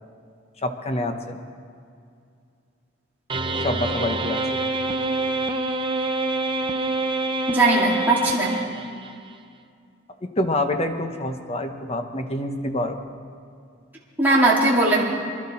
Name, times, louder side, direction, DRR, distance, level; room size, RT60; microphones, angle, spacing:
voice 1, 0.6-1.4 3.6-4.4 10.2-13.0, left 1 dB, 30° left, 6 dB, 1.0 m, -26 dB
sound 1, 3.3-9.1, right 2 dB, 25° right, 0.7 m, -26 dB
voice 2, 7.5-8.5 14.2-15.0, right 2 dB, 10° right, -6 dB, 2.5 m, -19 dB
23.0 x 12.0 x 4.4 m, 2.3 s
head